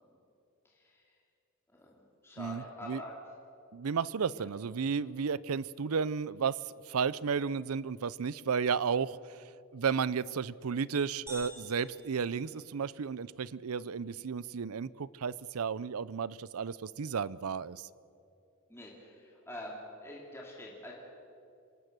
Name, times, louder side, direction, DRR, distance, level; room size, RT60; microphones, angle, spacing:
voice 1, 0.6-1.2 1.7-3.1 4.3-4.5 13.8-14.1 18.7-20.9, left 1 dB, 10° left, -3 dB, 2.6 m, -46 dB
voice 2, 2.4-3.0 3.7-9.4 9.7-17.9, right 6 dB, 90° right, 20 dB, 0.5 m, -33 dB
sound 1, 11.3-13.2, right 1 dB, 10° right, 4.2 m, -49 dB
26.0 x 19.0 x 6.7 m, 2.6 s
head